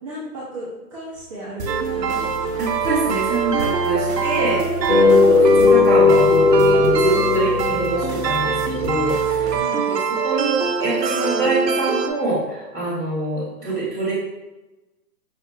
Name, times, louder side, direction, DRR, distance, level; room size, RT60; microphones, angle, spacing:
voice 1, 0.0-2.9 4.9-5.7 7.4-7.6 9.5-10.0 13.6-13.9, right 1 dB, 20° right, -11 dB, 0.7 m, -36 dB
sound 1, 1.6-9.6, equal, 55° right, 0.9 m, -31 dB
sound 2, 1.7-12.1, right 5 dB, 85° right, 0.7 m, -23 dB
voice 2, 2.6-9.5 9.9-10.0 10.2-14.1, right 2 dB, 5° left, -11 dB, 1.3 m, -25 dB
sound 3, 4.9-8.4, left 4 dB, 50° left, 0.7 m, -16 dB
5.6 x 3.0 x 3.1 m, 1.1 s
hypercardioid pair, 160°, 48 cm